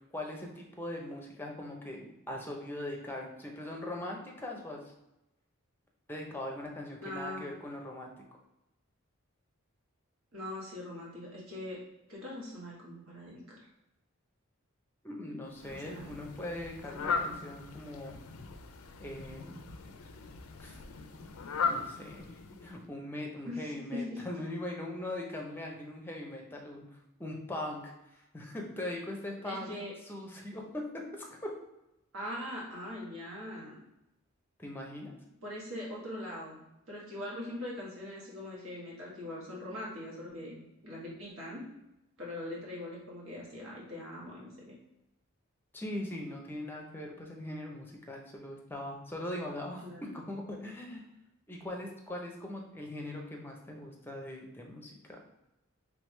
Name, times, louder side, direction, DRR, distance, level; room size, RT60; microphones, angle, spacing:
voice 1, 0.0-4.8 6.1-8.1 15.0-18.2 19.0-19.6 20.6-20.8 21.7-22.2 22.6-29.7 30.1-31.5 34.6-35.1 45.7-51.0 51.5-55.2, left 1 dB, 10° left, 0 dB, 0.6 m, -41 dB
voice 2, 7.0-7.5 10.3-11.8 12.1-13.7 15.7-16.2 17.0-17.5 23.4-24.2 29.4-29.9 32.1-33.8 35.4-36.6 36.9-41.6 42.2-44.7 49.8-50.0, left 1 dB, 70° right, -4 dB, 1.4 m, -41 dB
Fowl, 15.5-22.9, left 5 dB, 90° left, 0.4 m, -38 dB
3.4 x 3.3 x 3.1 m, 0.90 s
head